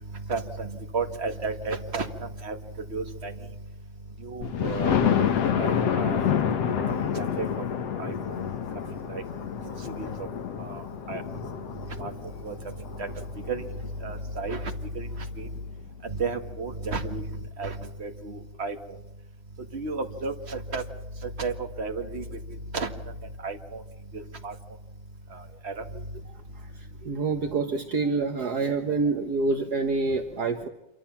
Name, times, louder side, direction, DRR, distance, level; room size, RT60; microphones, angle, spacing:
voice 1, 0.3-2.1 2.4-2.6 2.9-3.3 4.2-5.3 5.6-6.2 6.7-7.6 8.0-8.1 9.1-9.2 9.6-10.1 10.6-10.8 11.1-11.2 12.0-12.1 12.4-12.5 13.0-13.1 13.5-13.6 14.0-14.6 14.9-15.1 15.4-15.5 16.0-17.2 17.6-18.7 19.7-20.8 21.4-22.2 22.7-22.9 23.4-23.8 24.1-24.5 25.6-25.7, right 4 dB, 25° right, 5 dB, 1.6 m, -32 dB
Thunder, 4.4-14.1 14.7-14.8 15.2-15.3 15.6-15.7, left 8 dB, 60° left, 2.5 m, -28 dB
voice 2, 27.0-30.7, right 3 dB, 50° right, 5 dB, 1.2 m, -26 dB
27.5 x 24.0 x 5.9 m, 0.96 s
omnidirectional pair, 3.4 m